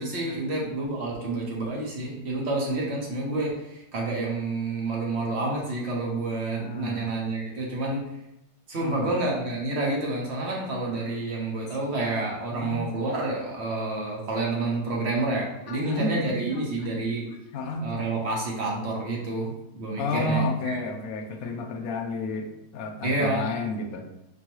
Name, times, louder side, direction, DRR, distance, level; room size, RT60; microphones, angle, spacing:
voice 1, 0.0-8.0 8.7-17.3 17.8-20.8 23.0-23.5, right 2 dB, 50° right, -2 dB, 1.1 m, -29 dB
voice 2, 6.6-7.1 8.7-9.1 12.5-12.8 15.7-16.6 17.5-17.9 20.0-24.1, left 2 dB, 75° left, 4 dB, 1.0 m, -31 dB
5.3 x 2.2 x 3.0 m, 0.85 s
omnidirectional pair, 1.6 m